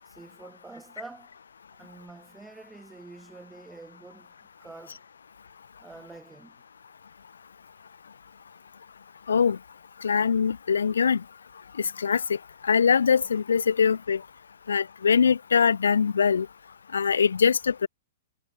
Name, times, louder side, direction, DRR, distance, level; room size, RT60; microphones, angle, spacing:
voice 1, 0.1-1.3 1.7-4.3 4.6-5.0 5.8-6.6, right 3 dB, 10° right, 6.2 m, -47 dB
voice 2, 9.3-9.6 10.0-11.2 11.8-12.4 12.6-14.2 14.7-16.5 16.9-17.9, left 6 dB, 75° left, 1.9 m, -22 dB
figure-of-eight pair, 110°, 0 cm